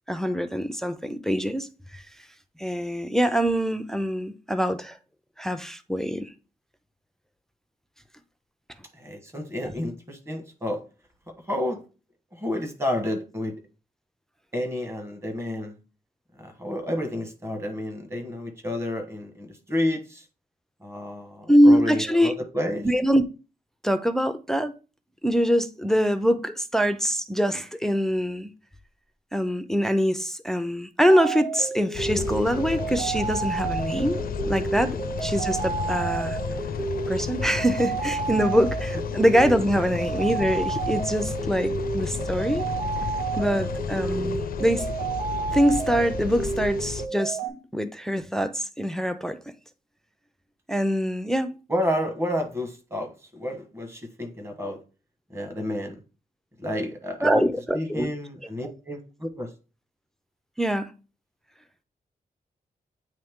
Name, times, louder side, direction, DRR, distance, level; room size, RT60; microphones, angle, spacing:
voice 1, 0.1-2.0 2.6-5.0 5.4-6.3 9.6-9.7 21.5-22.3 22.8-23.2 23.8-24.7 25.2-28.5 29.3-36.4 37.1-42.7 43.4-44.9 45.5-49.4 50.7-51.6 57.2-58.1 60.6-60.9, equal, 5° left, 0.4 m, -24 dB
voice 2, 8.9-10.8 11.5-11.8 12.3-13.6 14.5-15.7 16.3-20.2 20.8-22.9 38.9-39.0 51.7-54.8 55.3-56.0 56.6-57.4 57.7-59.5, left 1 dB, 15° right, 1.2 m, -30 dB
sound 1, 31.1-47.5, right 5 dB, 65° right, 3.4 m, -31 dB
sound 2, 31.9-47.1, left 7 dB, 65° left, 0.4 m, -33 dB
8.9 x 3.1 x 3.5 m
wide cardioid pair, 150°, 16 cm